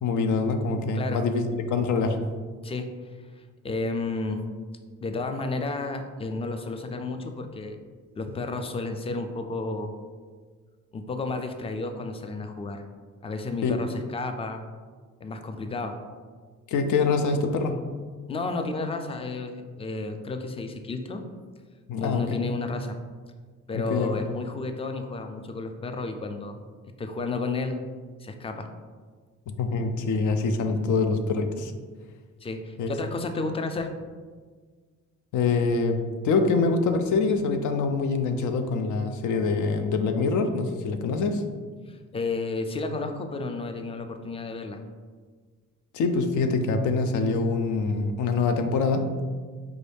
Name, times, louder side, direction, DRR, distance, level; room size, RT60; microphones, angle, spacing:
voice 1, 0.0-2.2 13.6-13.9 16.7-17.8 21.9-22.5 23.7-24.2 29.5-31.7 32.8-32.9 35.3-41.4 45.9-49.2, left 4 dB, 75° left, 7 dB, 0.5 m, -25 dB
voice 2, 3.6-4.4 5.0-7.8 8.1-9.9 10.9-12.8 13.2-14.6 15.2-15.9 18.3-21.2 22.0-23.0 23.7-26.6 27.0-27.8 28.2-28.7 32.4-33.9 41.9-44.8, left 3 dB, 20° left, 6 dB, 0.4 m, -32 dB
4.6 x 2.6 x 3.4 m, 1.5 s
cardioid pair, 90°, 30 cm